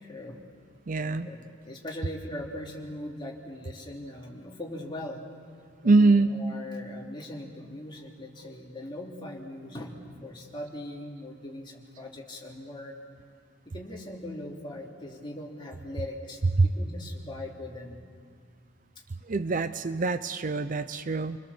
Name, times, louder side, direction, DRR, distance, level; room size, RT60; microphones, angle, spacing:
voice 1, 0.0-0.4 1.2-5.2 5.8-13.0 13.6-18.0, left 1 dB, 25° left, -2 dB, 2.9 m, -40 dB
voice 2, 0.9-1.3 5.8-6.3 16.6-16.7 19.3-21.4, right 3 dB, 40° right, 12 dB, 0.6 m, -23 dB
29.0 x 21.5 x 7.2 m, 2.1 s
head